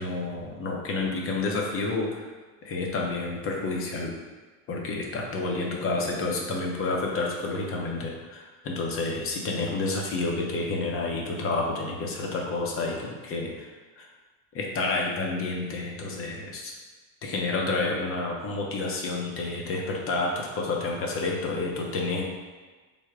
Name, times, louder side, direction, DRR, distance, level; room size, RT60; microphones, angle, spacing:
voice 1, 0.0-2.3 2.6-4.1 4.7-14.1 14.5-16.7 17.2-22.2, left 3 dB, 30° left, 0 dB, 0.6 m, -29 dB
3.4 x 2.0 x 3.6 m, 1.3 s
supercardioid pair, 115°, 44 cm